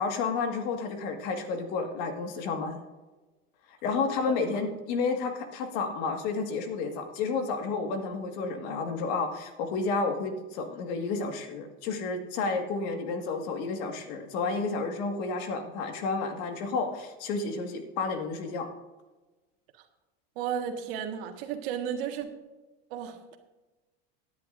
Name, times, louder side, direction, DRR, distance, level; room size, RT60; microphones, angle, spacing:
voice 1, 0.0-2.8 3.8-18.7, left 4 dB, 60° left, 5 dB, 1.9 m, -31 dB
voice 2, 20.3-22.3 22.9-23.4, right 8 dB, 70° right, 5 dB, 1.7 m, -33 dB
17.0 x 10.5 x 2.6 m, 1.2 s
supercardioid pair, 145°, 30 cm